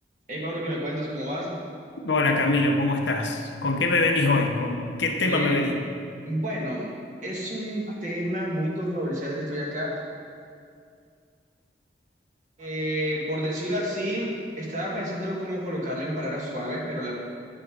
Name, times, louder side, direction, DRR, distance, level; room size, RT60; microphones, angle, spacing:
voice 1, 0.3-1.7 5.2-5.6 6.2-6.9 7.2-10.0 12.6-14.3 14.6-17.1, equal, 40° right, -3 dB, 1.8 m, -30 dB
voice 2, 2.0-5.7, left 2 dB, 85° left, 3 dB, 1.0 m, -23 dB
9.4 x 7.6 x 4.8 m, 2.3 s
head